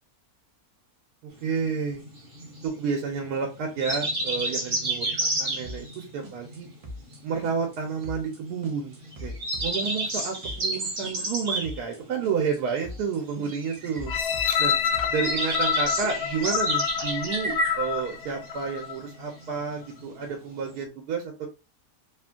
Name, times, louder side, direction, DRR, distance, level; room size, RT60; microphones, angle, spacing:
voice 1, 1.2-2.0 2.6-6.7 7.2-9.3 9.6-14.1 14.6-14.7 15.1-21.5, right 5 dB, 85° right, 1 dB, 1.2 m, -30 dB
sound 1, 1.3-20.8, right 1 dB, 40° right, 1.0 m, -32 dB
sound 2, 5.6-6.0 6.2-6.6 6.8-7.2 7.4-7.8 8.0-8.4 8.6-10.8 11.0-11.4 11.6-12.0 12.2-12.6 12.8-13.2 13.4-15.1, left 1 dB, 60° right, 0.3 m, -40 dB
sound 3, 14.1-19.0 19.6-19.7, left 8 dB, 70° left, 0.9 m, -27 dB
3.0 x 2.5 x 2.3 m, 0.29 s
omnidirectional pair, 1.7 m